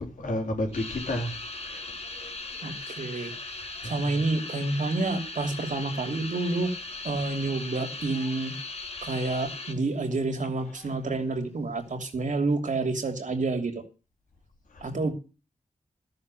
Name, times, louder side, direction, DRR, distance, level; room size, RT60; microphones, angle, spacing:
voice 1, 0.0-2.3 3.8-4.2 10.8-10.9 14.7-14.9, left 1 dB, 80° left, 4.1 m, -33 dB
sound 1, 0.7-9.9 10.3-10.9 11.6-11.9, left 3 dB, 50° left, 2.6 m, -39 dB
voice 2, 2.6-3.3 3.8-6.7 7.0-8.5 9.0-13.7 14.8-15.1, right 3 dB, 70° right, 2.9 m, -29 dB
13.5 x 6.8 x 7.7 m
cardioid pair, 50°, 13 cm